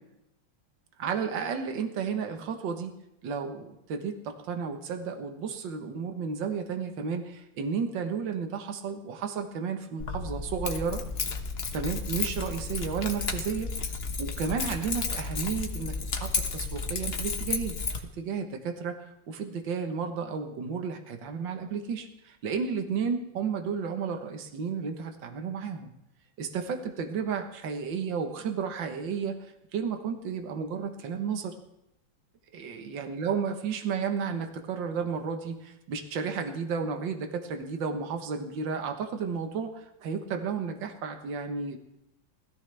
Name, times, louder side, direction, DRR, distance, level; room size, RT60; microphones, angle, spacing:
voice 1, 1.0-2.9 3.2-11.0 11.7-13.7 14.2-17.8 18.2-25.9 26.4-29.4 29.7-31.5 32.5-41.8, right 6 dB, 70° right, 5 dB, 1.9 m, -32 dB
Keys jangling, 10.0-18.0, left 4 dB, 40° left, 1.1 m, -32 dB
20.5 x 14.5 x 3.4 m, 0.85 s
omnidirectional pair, 2.1 m